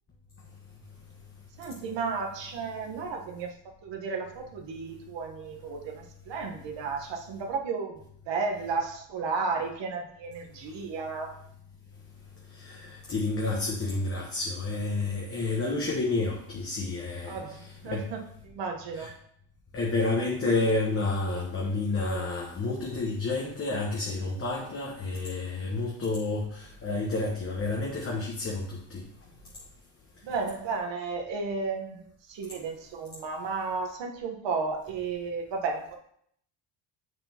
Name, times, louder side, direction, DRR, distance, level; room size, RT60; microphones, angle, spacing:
voice 1, 1.6-3.6 3.8-11.4 17.2-19.1 30.2-36.0, right 4 dB, 60° right, 2 dB, 1.4 m, -33 dB
voice 2, 13.1-17.4 17.9-18.0 18.9-19.1 19.7-26.4 26.8-28.8, left 3 dB, 25° left, -1 dB, 1.2 m, -29 dB
6.9 x 6.3 x 2.9 m, 0.67 s
cardioid pair, 100°, 50 cm